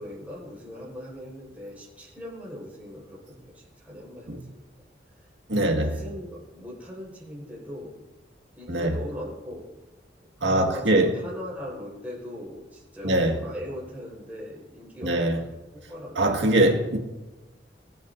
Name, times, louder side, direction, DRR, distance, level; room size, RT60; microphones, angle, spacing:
voice 1, 0.0-4.6 5.1-8.0 8.5-9.7 10.4-15.4 15.7-16.5, equal, 10° right, 4.9 m, -40 dB
voice 2, 5.5-5.9 8.7-9.0 10.4-11.1 13.0-13.4 15.0-15.4 16.2-17.0, right 1 dB, 80° right, 1.9 m, -22 dB
23.5 x 9.0 x 2.7 m
head